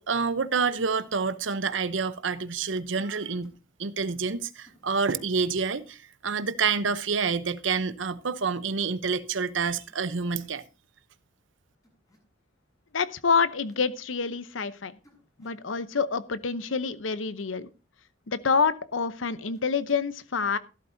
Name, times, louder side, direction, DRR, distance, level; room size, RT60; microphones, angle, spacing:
voice 1, 0.0-3.5 3.8-10.6, right 5 dB, 70° right, 0.8 m, -28 dB
sound 1, 3.4-3.6 4.1-4.3 4.6-4.9 5.2-5.4 6.7-6.9 8.3-8.5 9.7-10.0 10.2-10.6 11.8-12.2 13.3-13.9 15.0-15.6 17.2-17.4 19.5-20.1, equal, 20° left, 5.6 m, -61 dB
voice 2, 12.9-14.9 15.4-17.7 18.3-20.6, left 5 dB, 85° left, 0.8 m, -27 dB
14.5 x 12.5 x 2.7 m
head